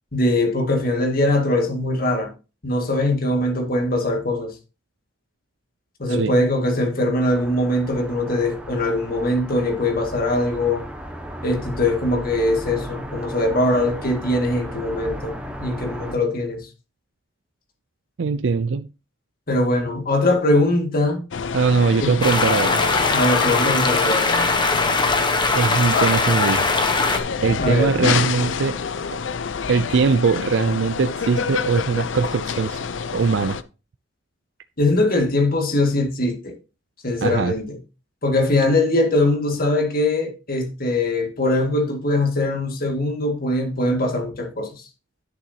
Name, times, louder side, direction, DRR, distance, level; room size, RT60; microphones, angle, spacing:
voice 1, 0.1-2.3 2.6-4.5 6.0-10.9 11.4-15.3 15.6-16.7 19.5-21.2 22.0-22.2 23.1-24.3 27.6-27.9 34.8-36.5 37.0-37.8 38.2-44.8, left 1 dB, 50° left, 2.0 m, -21 dB
sound 1, 7.2-16.2, equal, 5° right, 1.5 m, -35 dB
voice 2, 18.2-18.9 21.5-22.9 25.5-26.9 27.4-28.8 29.1-29.2 29.7-32.8 33.1-33.6 37.2-37.5, right 5 dB, 70° right, 0.4 m, -21 dB
sound 2, 21.3-33.6, left 6 dB, 85° left, 0.6 m, -27 dB
sound 3, 22.2-27.2, left 3 dB, 25° left, 1.1 m, -21 dB
11.0 x 6.8 x 2.8 m
head